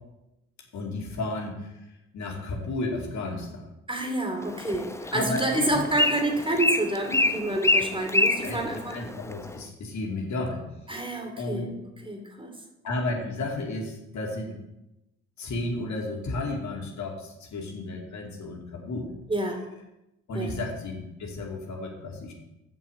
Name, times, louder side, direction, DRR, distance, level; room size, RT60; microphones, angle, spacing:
voice 1, 0.7-1.7 2.1-3.7 5.1-5.8 8.4-10.6 11.4-11.7 12.8-14.5 15.4-19.1 20.3-22.3, left 2 dB, 60° left, 0 dB, 2.5 m, -32 dB
voice 2, 3.9-9.0 10.9-11.7 12.0-12.5 19.3-19.6 20.3-20.6, right 1 dB, 15° right, 2 dB, 2.7 m, -28 dB
Bird, 4.4-9.6, left 2 dB, 10° left, 0.8 m, -27 dB
7.3 x 5.9 x 7.7 m, 0.91 s
supercardioid pair, 65°, 32 cm